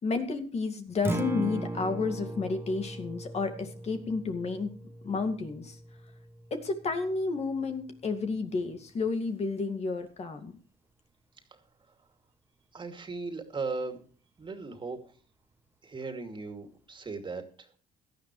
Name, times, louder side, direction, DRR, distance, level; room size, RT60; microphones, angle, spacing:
voice 1, 0.0-4.7 5.0-5.8 6.5-10.6, left 4 dB, 40° left, 6 dB, 2.3 m, -31 dB
Acoustic guitar, 0.9-9.1, right 2 dB, 15° right, 1.4 m, -40 dB
voice 2, 12.7-14.0 14.4-15.1 15.8-17.7, right 4 dB, 30° right, 5 dB, 2.6 m, -37 dB
17.0 x 12.5 x 3.2 m, 0.41 s
cardioid pair, 110°, 17 cm